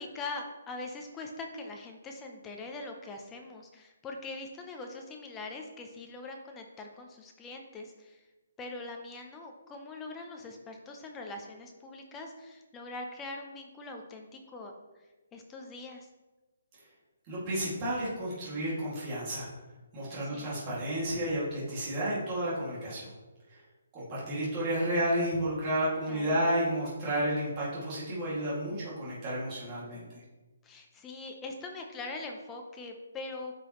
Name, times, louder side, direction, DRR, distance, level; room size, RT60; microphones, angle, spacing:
voice 1, 0.0-8.2 8.6-14.7 15.3-16.1 20.3-20.5 26.1-26.4 30.6-33.5, left 3 dB, 10° left, 3 dB, 0.5 m, -42 dB
voice 2, 17.3-19.5 19.9-23.1 23.5-23.6 23.9-30.2, right 1 dB, 15° right, -8 dB, 2.1 m, -31 dB
8.4 x 5.1 x 3.0 m, 1.1 s
hypercardioid pair, 175°, 0 cm